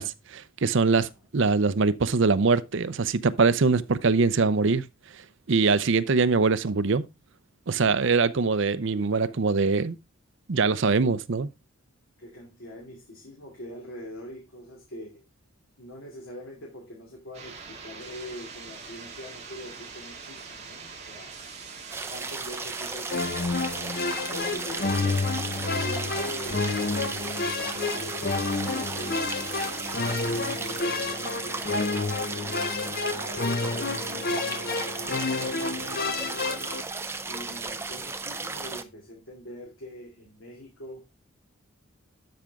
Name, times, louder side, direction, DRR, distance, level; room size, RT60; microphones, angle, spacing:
voice 1, 0.0-4.8 5.5-7.0 7.7-10.0 10.5-11.5, right 4 dB, 60° right, 0.6 m, -23 dB
voice 2, 7.8-8.2 12.2-15.2 15.8-21.3 22.1-23.7 24.3-25.2 25.5-26.7 26.9-28.2 28.7-29.5 30.2-34.7 35.3-36.7 37.2-41.0, left 1 dB, 65° left, 2.7 m, -43 dB
sound 1, 17.3-30.8, right 5 dB, 30° right, 2.3 m, -43 dB
sound 2, 21.9-38.8, right 3 dB, 10° right, 0.6 m, -35 dB
sound 3, 23.1-36.8, left 3 dB, 45° left, 0.8 m, -29 dB
12.0 x 5.2 x 3.5 m
head